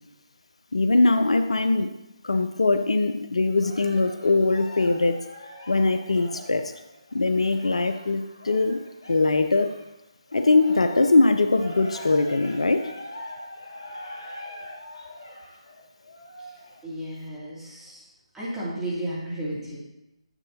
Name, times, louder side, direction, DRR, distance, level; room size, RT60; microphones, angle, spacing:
voice 1, 0.7-1.9 2.2-5.2 5.7-6.7 7.1-8.8 9.1-9.8 10.3-12.9, left 3 dB, 75° left, 9 dB, 0.6 m, -21 dB
Cheering, 3.6-9.9 10.3-16.9 17.5-17.6, left 1 dB, 55° left, 3.0 m, -42 dB
voice 2, 16.8-18.0 18.3-19.8, right 1 dB, 5° right, -10 dB, 2.6 m, -33 dB
9.8 x 6.6 x 2.8 m, 0.92 s
figure-of-eight pair, 150°, 3 cm